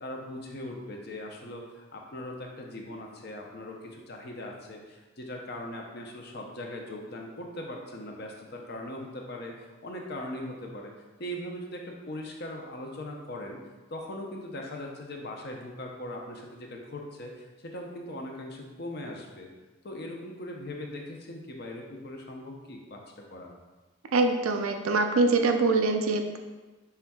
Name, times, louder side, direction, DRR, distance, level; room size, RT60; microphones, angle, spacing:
voice 1, 0.0-9.5 9.8-10.9 11.2-13.6 13.9-19.5 19.8-23.0 23.3-23.5, left 1 dB, 50° left, 1 dB, 0.6 m, -40 dB
voice 2, 24.1-26.4, right 3 dB, 80° right, 5 dB, 0.4 m, -24 dB
5.6 x 3.5 x 2.3 m, 1.2 s
head